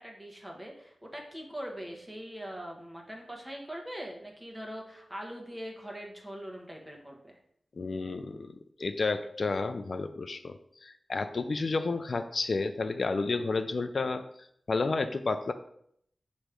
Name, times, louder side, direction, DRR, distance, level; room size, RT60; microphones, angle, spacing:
voice 1, 0.0-7.4, equal, 10° right, 0 dB, 1.2 m, -42 dB
voice 2, 7.8-8.5 8.8-14.2 14.7-15.5, left 3 dB, 55° left, 8 dB, 0.3 m, -31 dB
6.4 x 3.0 x 5.0 m, 0.70 s
wide cardioid pair, 100°, 0 cm